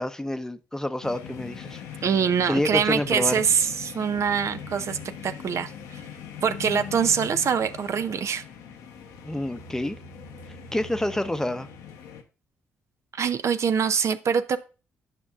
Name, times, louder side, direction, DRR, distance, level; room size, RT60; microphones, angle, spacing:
voice 1, 0.0-1.8 2.4-3.4 9.2-10.0 10.7-11.7, left 1 dB, 10° left, 0.7 m, -28 dB
sound 1, 1.0-12.2, left 7 dB, 85° left, 0.8 m, -41 dB
voice 2, 2.0-5.0 5.2-5.7 6.4-8.4 13.1-14.6, right 7 dB, 55° right, 0.5 m, -24 dB
9.6 x 5.2 x 2.4 m
supercardioid pair, 55°, 6 cm